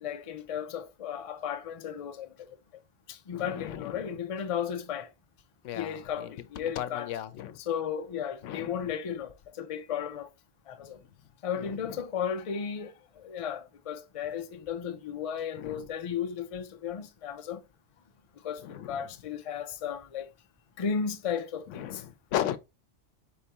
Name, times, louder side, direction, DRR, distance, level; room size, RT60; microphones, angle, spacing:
voice 1, 0.0-2.3 3.1-5.1 5.7-7.1 7.6-10.3 10.7-11.0 11.4-17.6 18.4-20.3 20.8-22.0, left 7 dB, 45° left, 0.4 m, -34 dB
voice 2, 3.3-4.2 5.6-7.6 8.4-8.9 11.5-12.0 15.6-15.9 18.6-19.1 21.7-22.6, left 11 dB, 90° left, 0.9 m, -37 dB
4.5 x 3.5 x 2.8 m
omnidirectional pair, 1.2 m